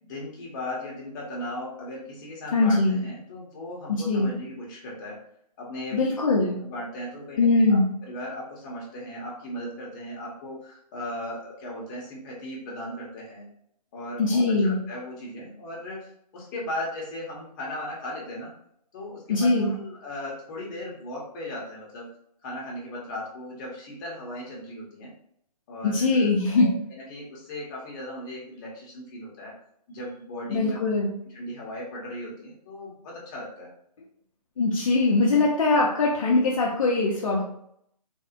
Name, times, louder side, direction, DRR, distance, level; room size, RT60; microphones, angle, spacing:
voice 1, 0.0-5.2 5.6-6.0 6.6-13.5 13.9-16.1 16.3-18.5 18.9-22.1 22.4-25.1 25.7-29.5 29.9-30.8 31.3-33.7, left 1 dB, 30° left, -3 dB, 0.9 m, -37 dB
voice 2, 2.5-3.0 3.9-4.3 5.9-6.6 7.4-7.9 14.2-14.8 19.3-19.7 25.8-26.7 30.5-31.1 34.6-37.4, left 3 dB, 50° left, -3 dB, 0.6 m, -22 dB
3.3 x 2.0 x 2.8 m, 0.71 s
hypercardioid pair, 150°, 21 cm